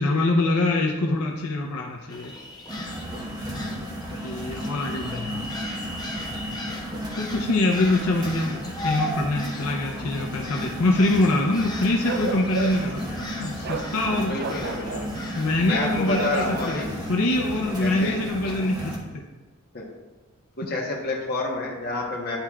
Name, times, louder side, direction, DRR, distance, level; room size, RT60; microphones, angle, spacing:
voice 1, 0.0-2.3 4.2-5.8 7.2-14.4 15.4-16.8 17.1-19.3, left 2 dB, 80° left, 1 dB, 0.6 m, -24 dB
sound 1, 2.1-16.8, left 1 dB, 20° left, 0.7 m, -38 dB
sound 2, 2.7-19.0, equal, 20° right, 1.0 m, -34 dB
Bark, 12.0-12.9 13.6-13.9 14.4-15.1 16.1-16.4, right 4 dB, 45° right, 0.4 m, -31 dB
voice 2, 14.0-15.1 15.6-16.9 17.8-18.4 19.7-19.9 20.6-22.4, left 2 dB, 45° left, -2 dB, 1.1 m, -29 dB
10.5 x 4.4 x 2.4 m, 1.2 s
head